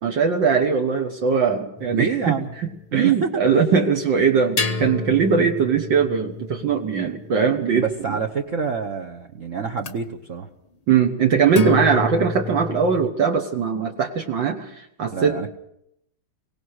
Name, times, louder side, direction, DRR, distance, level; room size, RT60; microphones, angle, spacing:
voice 1, 0.0-2.3 2.6-8.2 10.9-15.4, right 6 dB, 60° right, 3 dB, 1.9 m, -20 dB
sound 1, 1.8-3.0 4.6-8.3 9.8-9.9 11.5-13.1, left 3 dB, 50° left, 0.4 m, -30 dB
voice 2, 1.9-2.5 2.9-3.3 7.8-10.5 15.1-15.5, right 6 dB, 45° right, 3 dB, 1.2 m, -27 dB
24.0 x 18.0 x 6.5 m, 0.76 s
omnidirectional pair, 2.4 m